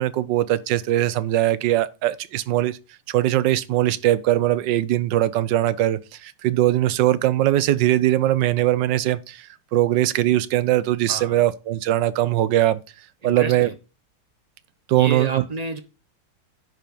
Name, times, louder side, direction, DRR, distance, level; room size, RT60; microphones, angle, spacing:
voice 1, 0.0-2.8 3.1-12.8 13.2-13.7 14.9-15.4, right 14 dB, 65° right, 1.3 m, -21 dB
voice 2, 11.1-11.4 13.2-13.7 14.9-15.8, right 4 dB, 40° right, 0.5 m, -31 dB
10.5 x 4.9 x 5.2 m
omnidirectional pair, 2.3 m